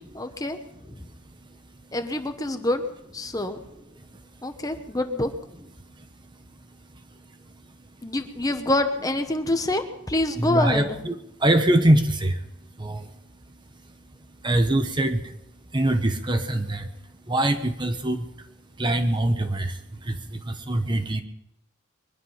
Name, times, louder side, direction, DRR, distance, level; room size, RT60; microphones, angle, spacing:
voice 1, 0.1-0.6 1.9-2.8 3.1-3.6 4.4-5.3 8.0-11.0, left 1 dB, 15° left, 7 dB, 1.0 m, -26 dB
voice 2, 1.4-1.7 3.2-3.4 4.0-4.2 5.8-6.4 6.8-7.9 10.4-13.2 13.9-14.0 14.4-15.4 15.7-16.9 17.2-18.5 18.8-21.2, right 1 dB, 20° right, 7 dB, 1.0 m, -25 dB
22.5 x 11.0 x 5.7 m, 0.86 s
head